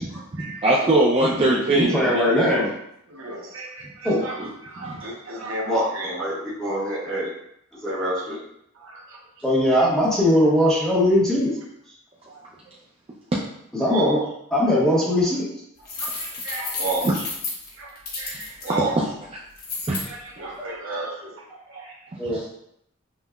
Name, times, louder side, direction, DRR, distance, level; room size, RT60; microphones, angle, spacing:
voice 1, 0.6-2.5 3.8-3.9 4.4-4.5 4.8-5.0 17.0-17.1 19.9-20.0 22.2-22.4, right 2 dB, 25° right, -5 dB, 0.4 m, -21 dB
voice 2, 1.5-2.7 4.0-4.2 5.6-5.8 6.2-7.3 7.8-8.4 9.4-11.5 13.7-14.2 14.5-15.5 16.8-17.0 18.7-18.9 22.2-22.4, left 1 dB, ahead, -6 dB, 0.8 m, -21 dB
voice 3, 3.1-7.3 7.8-8.4 8.7-9.2 9.5-9.9 12.3-12.4 13.8-14.2 14.9-15.0 16.0-17.1 17.7-17.9 18.2-19.0 20.1-21.4 21.7-22.5, right 2 dB, 80° right, -2 dB, 0.8 m, -32 dB
sound 1, 15.9-18.7 19.6-20.0, left 3 dB, 45° left, 0.8 m, -31 dB
5.4 x 2.0 x 2.3 m, 0.76 s
head